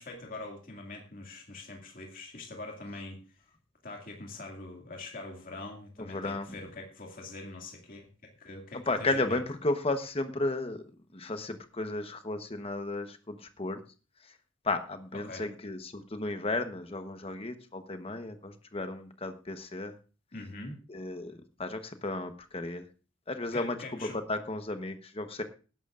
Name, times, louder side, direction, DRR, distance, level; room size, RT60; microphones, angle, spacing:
voice 1, 0.0-3.2 3.8-9.4 15.2-15.4 20.3-20.8 23.5-24.2, left 2 dB, 45° left, 1 dB, 2.3 m, -43 dB
voice 2, 6.0-6.5 8.9-10.8 11.1-13.8 14.6-20.0 20.9-22.8 23.3-23.8 24.3-25.4, left 2 dB, 30° left, 8 dB, 1.1 m, -34 dB
19.0 x 11.0 x 2.5 m, 0.34 s
head